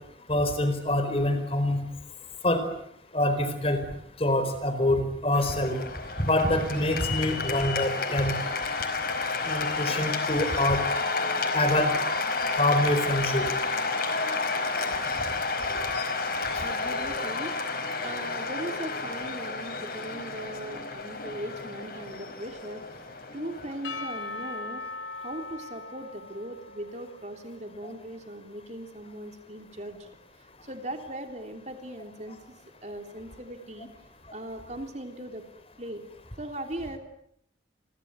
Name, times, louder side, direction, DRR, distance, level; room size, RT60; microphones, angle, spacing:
voice 1, 0.3-1.8 2.4-2.6 3.1-3.8 4.2-5.8 6.2-8.3 9.4-10.8 11.5-11.9 12.6-13.5 16.5-16.6 27.8-27.9, left 1 dB, 30° left, 9 dB, 4.6 m, -25 dB
Cheering / Applause, 5.3-24.6, left 3 dB, 50° left, 4.6 m, -31 dB
voice 2, 16.6-17.5 18.0-22.8 23.3-24.8 25.2-30.1 30.6-32.4 32.8-33.9 34.3-35.4 35.8-36.1 36.4-37.0, right 1 dB, 40° right, 5 dB, 3.3 m, -39 dB
Percussion / Church bell, 23.8-28.2, left 3 dB, 90° left, 3.6 m, -40 dB
29.5 x 23.5 x 8.1 m, 0.70 s
head